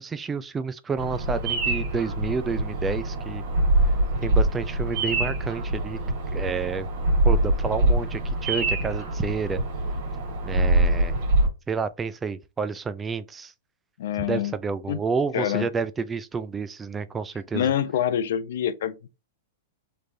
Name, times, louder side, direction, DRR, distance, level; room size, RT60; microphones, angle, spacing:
voice 1, 0.0-3.4 4.2-6.0 6.3-6.9 7.2-9.6 10.4-11.1 11.7-13.5 14.3-17.7, right 5 dB, 15° right, 0.3 m, -30 dB
Bird vocalization bird call bird song, 1.0-11.5, right 1 dB, 50° right, 1.8 m, -24 dB
voice 2, 14.0-14.5 14.9-15.0 15.3-15.7 17.5-19.0, left 10 dB, 70° left, 0.5 m, -26 dB
3.3 x 3.2 x 2.5 m
hypercardioid pair, 145°, 0 cm